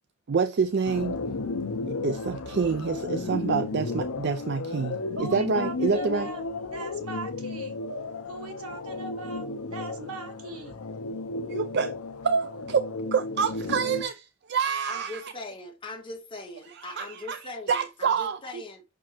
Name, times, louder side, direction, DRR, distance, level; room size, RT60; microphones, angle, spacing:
voice 1, 0.3-1.2 1.9-6.3 11.5-11.9 12.2-15.2 16.9-17.4 17.7-18.4, right 5 dB, 50° right, 0.4 m, -27 dB
sound 1, 0.8-14.0, left 3 dB, 80° left, 0.8 m, -34 dB
voice 2, 5.2-6.5 6.7-7.8 8.3-10.8, right 2 dB, 85° right, 1.8 m, -39 dB
voice 3, 14.9-18.8, left 2 dB, 20° left, 1.8 m, -40 dB
6.0 x 4.5 x 4.3 m
head